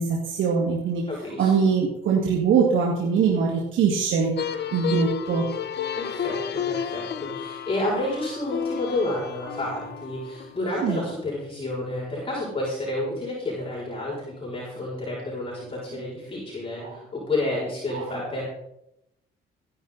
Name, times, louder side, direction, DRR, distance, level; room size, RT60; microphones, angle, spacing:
voice 1, 0.0-1.1 1.4-4.3 4.7-5.5 10.8-11.0 16.8-17.0 17.9-18.1, right 5 dB, 75° right, -1 dB, 2.1 m, -22 dB
voice 2, 1.1-1.5 5.9-18.5, left 1 dB, 25° left, -6 dB, 6.7 m, -30 dB
sound 1, 4.4-11.1, left 8 dB, 60° left, 1.2 m, -32 dB
16.0 x 11.0 x 4.2 m, 0.82 s
cardioid pair, 90°, 20 cm